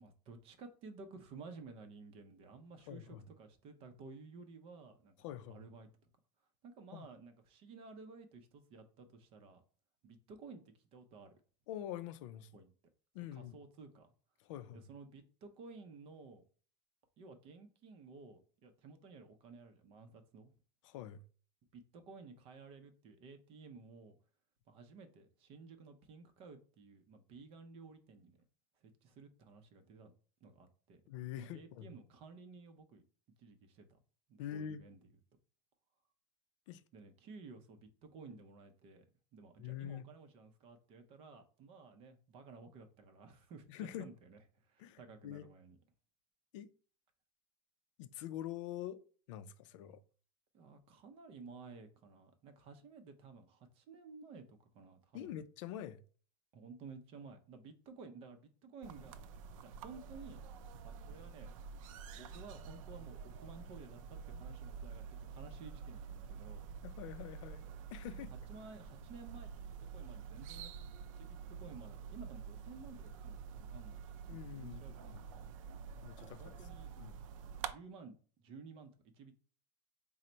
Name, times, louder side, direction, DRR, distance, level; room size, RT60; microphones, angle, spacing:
voice 1, 0.0-6.1 6.6-9.6 10.0-11.3 12.5-12.7 13.3-14.1 14.7-16.5 17.2-20.5 21.7-24.2 24.7-28.4 28.8-30.1 30.4-31.0 31.4-33.0 33.4-34.0 34.3-35.1 36.9-39.0 39.3-43.7 44.0-45.8 50.5-55.4 56.5-59.2 59.6-60.4 60.8-61.5 62.1-66.7 68.5-70.8 71.2-75.4 76.3-76.9 77.6-79.4, right 4 dB, 35° right, 0.5 m, -54 dB
voice 2, 2.9-3.2 5.2-5.6 6.9-7.1 11.7-12.5 13.1-13.6 14.4-14.9 20.8-21.2 31.1-31.9 34.4-34.8 36.7-36.8 39.6-40.1 43.7-44.1 44.8-45.4 46.5-46.7 48.0-49.0 49.3-50.0 55.1-56.0 66.8-68.3 74.3-75.3 76.0-76.6 77.0-77.2, left 11 dB, 70° left, 0.4 m, -45 dB
sound 1, 58.8-77.7, right 6 dB, 85° right, 0.4 m, -48 dB
3.9 x 2.1 x 4.3 m
supercardioid pair, 165°, 17 cm